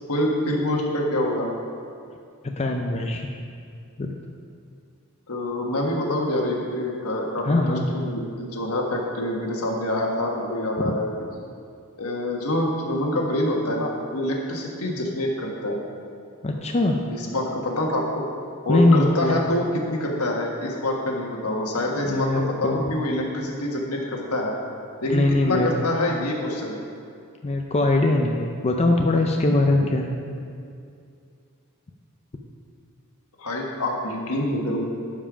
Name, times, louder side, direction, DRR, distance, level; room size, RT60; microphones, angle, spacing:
voice 1, 0.1-1.5 5.3-11.1 12.0-15.8 17.1-18.2 18.6-24.6 25.0-26.8 33.4-34.9, left 1 dB, 75° left, 0 dB, 1.4 m, -26 dB
voice 2, 2.4-3.2 4.0-4.1 7.5-7.9 10.8-10.9 16.4-17.0 18.7-19.4 22.1-22.8 25.1-25.7 27.4-30.1, left 2 dB, 30° left, 2 dB, 0.5 m, -21 dB
12.0 x 5.5 x 5.0 m, 2.4 s
head